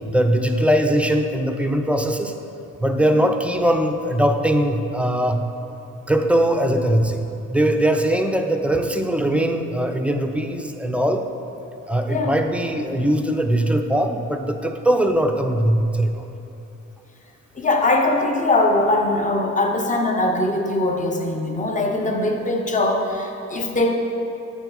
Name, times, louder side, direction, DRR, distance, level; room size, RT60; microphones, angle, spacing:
voice 1, 0.0-2.3 2.8-5.4 6.1-7.2 7.5-11.2 11.9-16.3, right 1 dB, 5° right, 5 dB, 0.4 m, -20 dB
voice 2, 17.6-24.0, left 2 dB, 25° left, 2 dB, 0.8 m, -21 dB
8.8 x 4.6 x 4.0 m, 2.9 s
cardioid pair, 90°, 30 cm